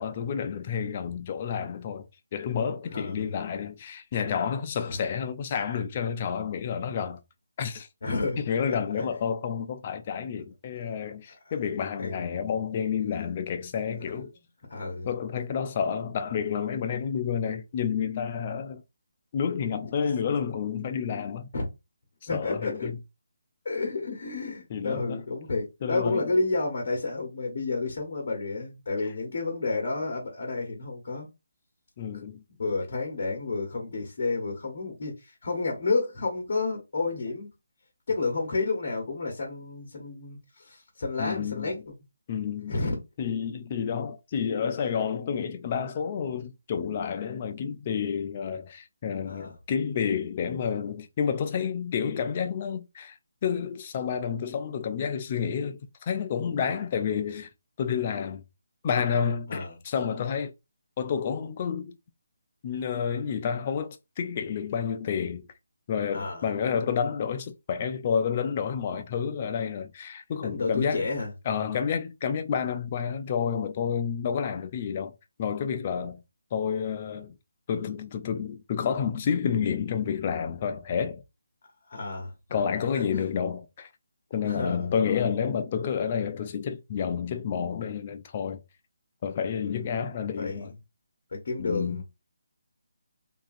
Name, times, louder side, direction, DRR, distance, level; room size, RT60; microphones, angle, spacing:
voice 1, 0.0-7.2 7.6-7.9 8.4-14.3 15.1-18.8 19.3-21.5 22.3-23.0 24.7-25.2 25.8-26.4 32.0-32.4 41.2-41.8 42.3-42.8 43.2-53.1 53.4-57.5 57.8-58.4 58.8-60.5 61.0-62.0 62.6-65.5 65.9-71.1 71.5-75.1 75.4-76.2 76.5-77.4 77.7-81.2 82.5-83.9 84.3-88.6 89.2-90.7 91.6-92.0, left 7 dB, 35° left, 0.4 m, -30 dB
voice 2, 2.9-3.3 4.9-5.0 8.0-9.1 10.8-10.9 12.0-12.2 14.7-15.1 19.8-19.9 21.5-21.7 22.3-22.9 23.6-31.3 32.1-32.2 32.6-37.5 38.1-41.9 42.7-42.9 49.3-49.5 59.5-59.7 66.1-66.5 70.4-71.3 81.9-82.6 82.9-83.3 84.4-84.9 89.6-89.9 90.4-90.7 91.3-92.0, left 3 dB, 55° left, 0.9 m, -31 dB
2.8 x 2.4 x 2.5 m
figure-of-eight pair, 160°, 0 cm